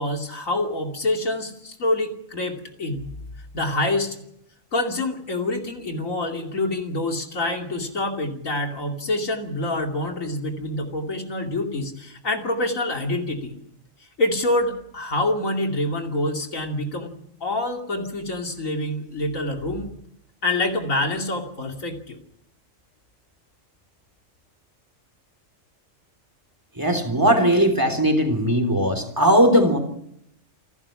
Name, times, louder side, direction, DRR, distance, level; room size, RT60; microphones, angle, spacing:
voice 1, 0.0-3.1 3.5-4.2 4.7-13.5 14.2-17.1 17.4-19.9 20.4-22.2, left 2 dB, 80° left, 2 dB, 3.1 m, -26 dB
voice 2, 26.8-29.8, equal, 15° right, 5 dB, 3.5 m, -19 dB
28.0 x 12.5 x 9.8 m, 0.75 s
omnidirectional pair, 1.4 m